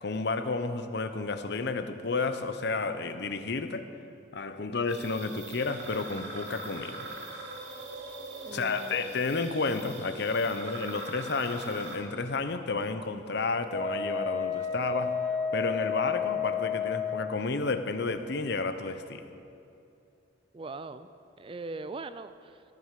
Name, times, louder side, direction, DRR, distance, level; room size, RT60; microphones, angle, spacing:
voice 1, 0.0-3.9 4.3-7.1 8.5-15.1 15.5-19.2, left 3 dB, 55° left, 9 dB, 0.8 m, -31 dB
sound 1, 4.9-12.0, right 2 dB, 60° right, 2.8 m, -42 dB
voice 2, 8.4-9.1 20.5-21.1 21.4-22.6, right 3 dB, 25° right, 12 dB, 0.4 m, -41 dB
Wind instrument woodwind instrument, 13.7-17.4, left 6 dB, 35° left, 2.7 m, -31 dB
15.0 x 9.4 x 7.5 m, 2.7 s
head